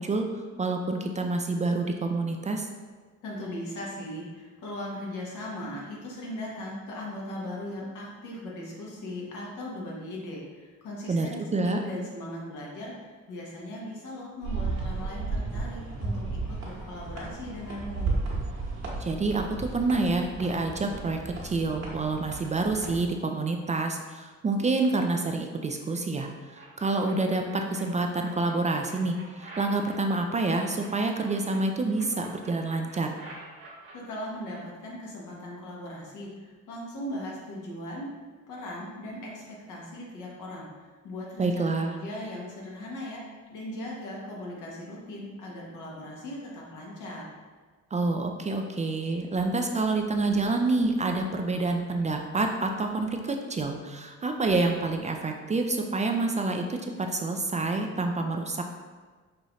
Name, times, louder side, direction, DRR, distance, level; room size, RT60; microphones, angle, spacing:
voice 1, 0.0-2.7 11.1-11.8 19.0-33.1 41.4-42.0 47.9-58.7, right 3 dB, 25° right, 4 dB, 0.3 m, -28 dB
voice 2, 3.2-18.2 33.9-38.1 38.5-43.2 43.5-47.2, left 1 dB, 80° left, -4 dB, 1.2 m, -38 dB
sound 1, 14.4-23.1, right 3 dB, 60° right, 1.2 m, -34 dB
sound 2, 26.5-27.8 28.2-31.6 31.9-33.9, right 3 dB, 80° right, 1.2 m, -48 dB
5.5 x 2.6 x 3.0 m, 1.4 s
cardioid pair, 90°, 30 cm